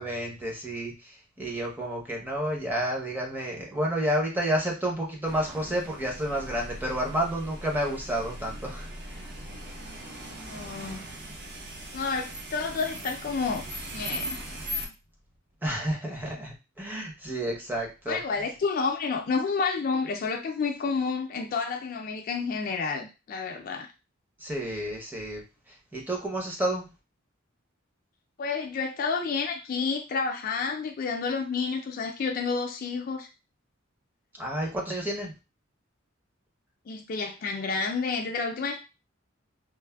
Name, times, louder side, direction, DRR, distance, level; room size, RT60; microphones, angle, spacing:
voice 1, 0.0-9.3 15.6-18.2 24.4-25.4 25.7-26.9 34.4-35.3, right 1 dB, 10° right, -1 dB, 0.6 m, -30 dB
sound 1, 5.2-14.9, equal, 50° right, 0.6 m, -39 dB
voice 2, 10.4-11.0 11.9-13.6 13.9-14.4 18.1-23.9 28.4-33.3 36.9-38.8, left 4 dB, 45° left, 3 dB, 0.3 m, -30 dB
3.2 x 2.0 x 2.2 m, 0.29 s
head